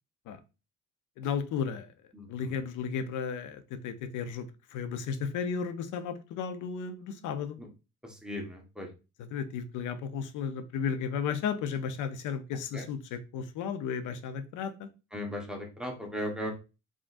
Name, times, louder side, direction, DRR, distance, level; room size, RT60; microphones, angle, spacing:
voice 1, 1.2-1.9 2.3-7.6 9.2-14.9, left 6 dB, 85° left, 11 dB, 0.6 m, -34 dB
voice 2, 2.1-2.5 7.6-7.7 8.2-8.9 12.7-12.8 15.1-16.5, equal, 5° right, 1 dB, 1.1 m, -37 dB
3.7 x 3.7 x 2.5 m, 0.30 s
cardioid pair, 90°, 30 cm